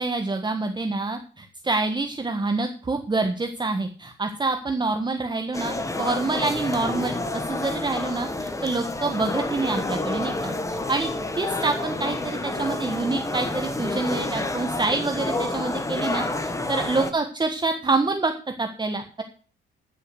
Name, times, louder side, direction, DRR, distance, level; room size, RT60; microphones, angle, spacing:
voice 1, 0.0-11.1 11.4-18.3 18.6-19.2, right 3 dB, 20° right, 6 dB, 1.4 m, -27 dB
sound 1, 5.5-17.1, left 2 dB, 15° left, 1.5 m, -29 dB
11.0 x 6.6 x 7.9 m, 0.41 s
cardioid pair, 90°, 20 cm